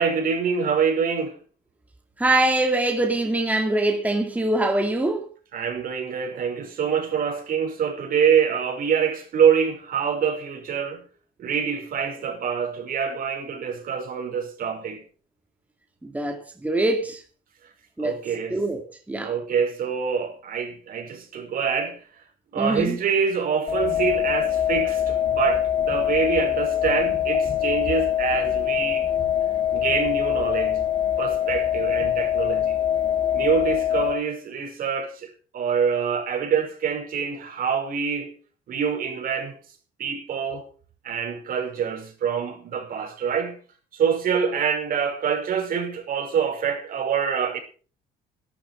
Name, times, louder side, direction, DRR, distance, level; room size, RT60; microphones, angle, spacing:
voice 1, 0.0-1.4 5.5-11.0 11.4-15.0 18.0-18.6 19.2-22.0 22.5-29.1 29.7-30.9 31.2-32.8 33.3-38.4 38.7-39.6 40.0-40.6 41.0-43.6 43.9-47.6, right 7 dB, 60° right, 5.4 m, -25 dB
voice 2, 2.2-5.3 16.0-17.2 18.0-18.2 18.5-19.3 22.6-23.0, right 2 dB, 10° right, 2.3 m, -23 dB
sound 1, 23.7-34.1, left 10 dB, 30° left, 5.2 m, -23 dB
12.5 x 12.0 x 6.2 m
cardioid pair, 110°, 17 cm